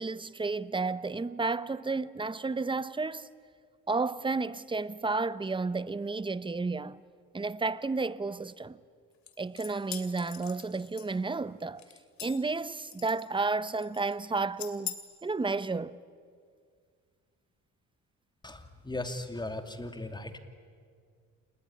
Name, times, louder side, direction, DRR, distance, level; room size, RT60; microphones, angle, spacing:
voice 1, 0.0-3.3 3.9-7.0 7.3-8.8 9.4-11.9 12.2-14.9 15.2-16.0, right 3 dB, 15° right, 0.8 m, -32 dB
sound 1, 9.3-11.4 11.8-12.5 12.9-13.4 13.7-14.1 14.6-15.0, left 9 dB, 70° left, 2.4 m, -42 dB
voice 2, 18.4-20.4, left 2 dB, 15° left, 2.5 m, -37 dB
28.5 x 19.5 x 9.9 m
cardioid pair, 90°, 30 cm